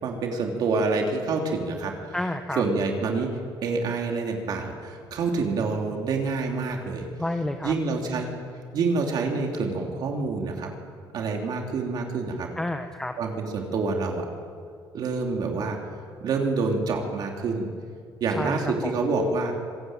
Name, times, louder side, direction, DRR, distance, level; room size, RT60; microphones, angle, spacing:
voice 1, 0.0-2.1 2.5-3.3 3.6-7.1 7.6-8.3 8.7-10.7 11.1-12.5 13.2-14.3 14.9-15.8 16.2-17.7 18.2-19.5, right 4 dB, 55° right, 1 dB, 3.3 m, -27 dB
voice 2, 2.1-2.6 7.2-7.7 12.6-13.1 18.3-18.9, left 1 dB, 10° left, 6 dB, 1.0 m, -30 dB
25.5 x 21.0 x 9.1 m, 2.2 s
cardioid pair, 165°, 8 cm